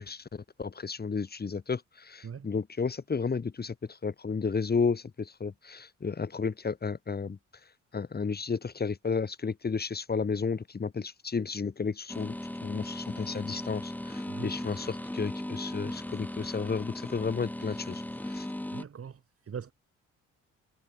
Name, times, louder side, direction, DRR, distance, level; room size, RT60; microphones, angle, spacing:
voice 1, 0.0-7.4 7.9-12.3 12.6-18.5, left 5 dB, 30° left, 3.0 m, -32 dB
sound 1, 12.1-18.8, left 1 dB, 5° left, 1.8 m, -38 dB
voice 2, 18.7-19.7, right 7 dB, 50° right, 7.9 m, -41 dB
cardioid pair, 90°, 30 cm